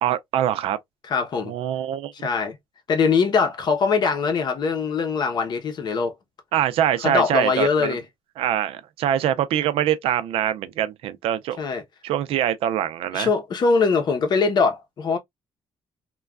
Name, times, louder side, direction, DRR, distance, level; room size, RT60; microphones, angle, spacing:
voice 1, 0.0-0.8 1.5-2.3 6.5-7.9 8.4-11.6 12.0-13.3, right 11 dB, 85° right, 0.4 m, -24 dB
voice 2, 1.1-1.5 2.1-2.6 2.9-6.1 7.0-8.0 11.6-11.8 13.1-15.2, left 5 dB, 50° left, 0.8 m, -22 dB
3.1 x 2.3 x 2.3 m
cardioid pair, 135°, 10 cm